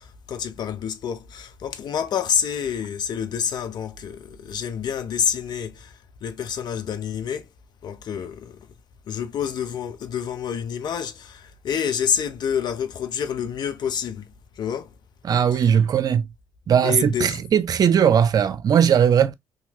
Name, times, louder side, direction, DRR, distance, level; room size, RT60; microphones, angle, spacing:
voice 1, 0.0-7.5 7.8-8.7 9.1-14.9 15.5-15.6 16.8-17.4, left 8 dB, 60° left, 0.7 m, -28 dB
voice 2, 15.2-16.3 16.7-19.3, right 8 dB, 50° right, 0.5 m, -18 dB
2.8 x 2.7 x 2.7 m
hypercardioid pair, 50°, 8 cm